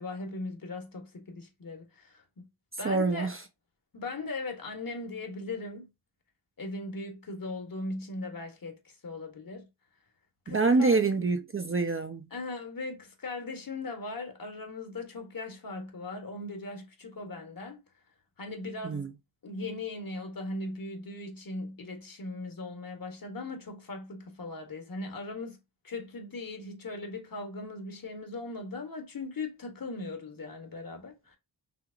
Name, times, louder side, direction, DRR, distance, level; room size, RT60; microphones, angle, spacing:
voice 1, 0.0-2.2 2.8-3.3 3.9-5.9 6.6-9.7 10.4-11.0 12.3-17.8 18.4-19.1 19.4-25.6 25.8-31.4, left 2 dB, 50° left, 1.3 m, -39 dB
voice 2, 2.8-3.3 10.5-12.3 18.8-19.1, right 3 dB, 30° right, 0.5 m, -26 dB
5.7 x 2.0 x 2.5 m
cardioid pair, 55°, 44 cm